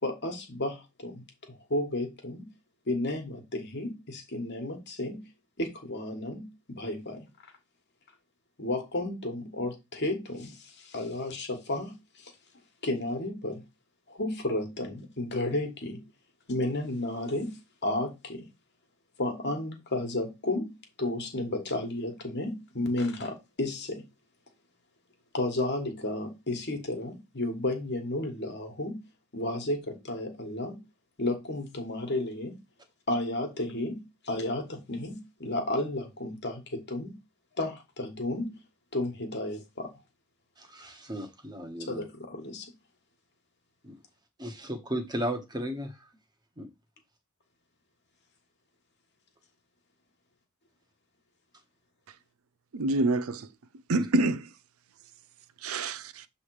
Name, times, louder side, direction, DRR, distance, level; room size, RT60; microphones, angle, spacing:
voice 1, 0.0-2.4 2.8-5.3 5.6-7.5 8.6-12.3 12.8-13.6 14.1-16.0 16.5-18.5 19.2-24.1 25.3-29.0 29.3-30.8 31.2-32.6 33.1-37.1 37.6-38.6 38.9-39.9 41.9-42.7 55.7-55.9, left 1 dB, 55° left, 1.5 m, -33 dB
voice 2, 40.6-42.0 43.8-44.0 44.4-46.0 46.6-46.7 53.9-54.0, equal, 20° right, 1.1 m, -35 dB
voice 3, 52.7-53.5 53.9-54.5 55.6-56.3, right 2 dB, 85° right, 0.5 m, -27 dB
7.1 x 3.3 x 4.7 m
head